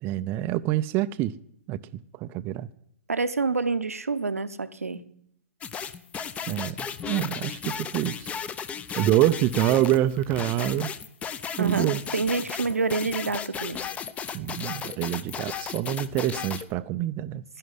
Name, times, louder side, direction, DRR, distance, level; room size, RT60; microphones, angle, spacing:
voice 1, 0.0-1.3 1.7-2.7 6.5-8.3 9.0-10.9 11.6-12.0 14.3-17.4, right 14 dB, 30° right, 0.5 m, -26 dB
voice 2, 3.1-5.0 11.6-13.8, right 4 dB, 85° right, 0.9 m, -27 dB
sound 1, 5.6-16.7, left 7 dB, 15° left, 0.8 m, -35 dB
11.0 x 11.0 x 9.8 m
figure-of-eight pair, 120°, 8 cm